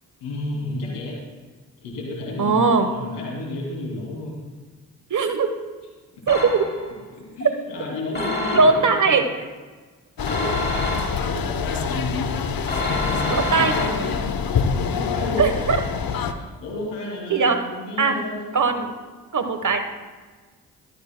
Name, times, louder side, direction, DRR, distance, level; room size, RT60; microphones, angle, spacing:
voice 1, 0.2-1.2 1.8-4.4 7.1-9.2 10.3-14.3 14.6-15.5 16.6-18.9, left 1 dB, 90° left, -2 dB, 2.7 m, -32 dB
voice 2, 2.4-2.9 5.1-5.5 6.3-6.6 8.5-9.3 13.3-13.7 15.4-15.8 17.3-17.6 18.0-18.2 18.5-18.9 19.3-19.8, right 4 dB, 50° right, 7 dB, 1.2 m, -19 dB
sound 1, 6.3-7.0 8.1-9.0 10.3-11.5 12.7-14.3, left 2 dB, 25° left, 3.4 m, -28 dB
sound 2, 10.2-16.3, left 6 dB, 60° left, 0.9 m, -26 dB
14.5 x 13.0 x 2.2 m, 1.3 s
supercardioid pair, 40°, 40 cm